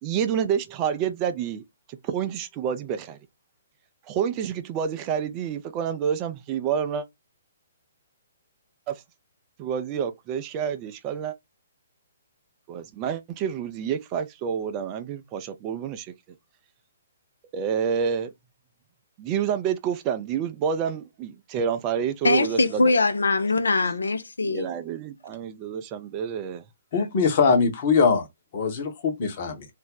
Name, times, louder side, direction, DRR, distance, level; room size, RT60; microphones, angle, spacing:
voice 1, 0.0-1.6 1.9-3.2 4.1-7.1 8.9-9.0 9.6-11.4 12.7-16.1 17.5-18.3 19.2-22.8 24.4-26.6, right 8 dB, 30° right, 0.4 m, -28 dB
voice 2, 22.2-24.7, left 3 dB, 70° left, 0.4 m, -22 dB
voice 3, 26.9-28.3 28.5-29.7, left 5 dB, 40° left, 0.9 m, -22 dB
2.6 x 2.0 x 3.7 m
figure-of-eight pair, 125°, 0 cm